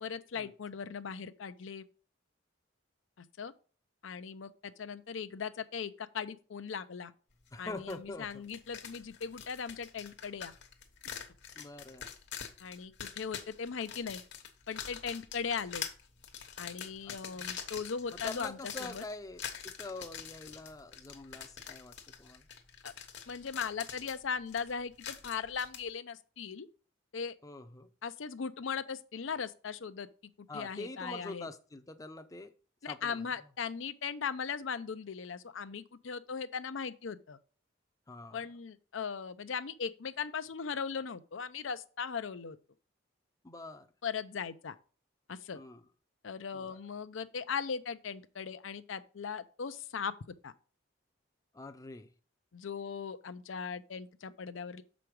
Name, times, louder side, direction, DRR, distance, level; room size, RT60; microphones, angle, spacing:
voice 1, 0.0-1.8 3.2-3.5 4.0-7.1 7.6-10.5 12.6-14.2 14.7-15.8 16.6-19.0 22.8-22.9 23.3-26.7 27.1-27.4 28.0-30.1 30.4-31.5 32.8-37.4 38.3-42.6 44.0-44.8 45.3-45.6 46.2-50.1 50.4-50.5 52.5-54.8, left 6 dB, 80° left, 0.6 m, -38 dB
voice 2, 7.5-8.4 11.5-12.1 17.0-17.5 18.2-22.5 27.4-27.9 30.5-32.5 32.9-33.3 38.1-38.4 43.4-43.9 45.5-45.8 46.5-46.8 51.5-52.1, left 2 dB, 20° left, 0.6 m, -45 dB
sound 1, 7.9-8.0 8.3-25.8, left 8 dB, 65° left, 1.2 m, -45 dB
6.8 x 5.1 x 4.6 m
head